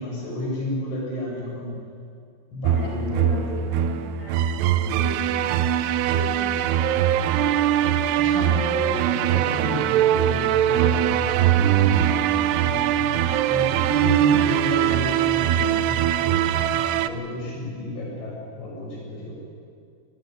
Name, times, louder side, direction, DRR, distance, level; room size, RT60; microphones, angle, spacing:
voice 1, 0.0-1.7 2.5-3.6 8.1-11.7 12.5-12.9 13.5-16.5 16.9-19.3, left 1 dB, 80° left, -3 dB, 9.8 m, -31 dB
sound 1, 2.6-17.1, right 10 dB, 80° right, 2.8 m, -21 dB
voice 2, 2.7-6.6, left 1 dB, 10° left, -3 dB, 4.2 m, -37 dB
21.0 x 20.5 x 9.4 m, 2.3 s
omnidirectional pair, 5.0 m